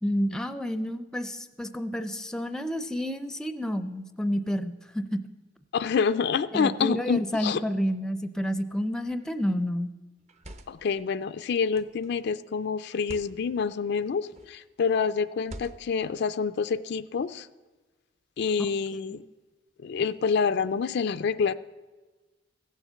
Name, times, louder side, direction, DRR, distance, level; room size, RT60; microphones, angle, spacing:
voice 1, 0.0-5.2 6.5-9.9 19.1-19.2, equal, 5° left, 11 dB, 0.5 m, -30 dB
voice 2, 5.7-7.6 10.7-17.5 18.4-19.2 19.8-21.5, left 5 dB, 65° left, 12 dB, 0.4 m, -27 dB
sound 1, 9.0-9.4 10.2-10.9 11.7-12.1 12.9-13.4 14.3-14.6 15.4-16.0, right 1 dB, 40° right, 0.8 m, -45 dB
15.5 x 7.3 x 6.8 m, 1.2 s
head